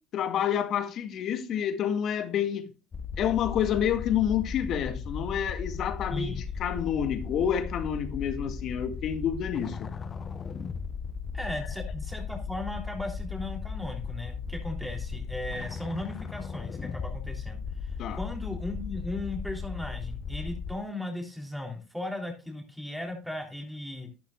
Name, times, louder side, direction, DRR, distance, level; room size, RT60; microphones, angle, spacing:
voice 1, 0.1-2.7 3.2-9.8 18.0-18.2, left 9 dB, 55° left, 1.9 m, -28 dB
sound 1, 2.9-20.8, left 5 dB, 30° left, 0.9 m, -36 dB
voice 2, 11.3-24.1, left 1 dB, ahead, 3.4 m, -37 dB
12.0 x 11.0 x 2.4 m
supercardioid pair, 80°, 0 cm